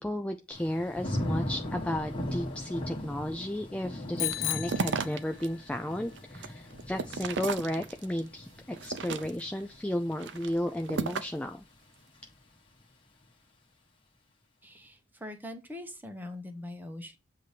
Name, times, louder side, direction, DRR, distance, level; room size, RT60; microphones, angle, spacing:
voice 1, 0.0-11.6, left 1 dB, 5° left, 5 dB, 0.3 m, -33 dB
Thunder / Rain, 0.5-11.4 11.9-12.3, left 1 dB, 30° left, 1.3 m, -39 dB
Bicycle bell, 4.2-5.7, left 14 dB, 85° left, 0.5 m, -34 dB
sound 1, 4.2-5.5 5.9-8.2 8.7-9.6 10.1-11.5, right 5 dB, 65° right, 0.5 m, -35 dB
voice 2, 14.6-17.2, left 1 dB, 10° right, 6 dB, 0.9 m, -42 dB
7.6 x 2.8 x 4.9 m, 0.28 s
head